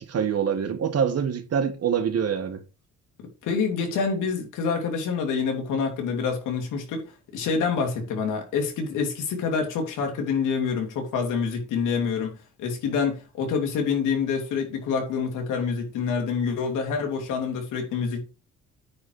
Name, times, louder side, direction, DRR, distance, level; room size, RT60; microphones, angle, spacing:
voice 1, 0.0-2.6, right 7 dB, 55° right, 1.7 m, -25 dB
voice 2, 3.2-7.0 7.3-18.2, left 5 dB, 90° left, 3.0 m, -27 dB
9.5 x 4.8 x 4.9 m
cardioid pair, 90°, 30 cm